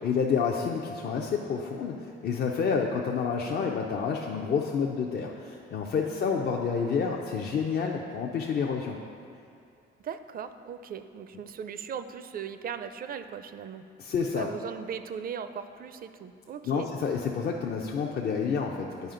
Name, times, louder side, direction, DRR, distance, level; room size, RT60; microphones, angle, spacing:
voice 1, 0.0-9.0 14.0-14.5 16.6-19.1, left 6 dB, 55° left, 0 dB, 0.5 m, -29 dB
voice 2, 6.0-6.3 10.0-13.8 14.4-16.9, right 7 dB, 50° right, 10 dB, 0.4 m, -38 dB
9.1 x 4.9 x 3.8 m, 2.5 s
cardioid pair, 90°, 20 cm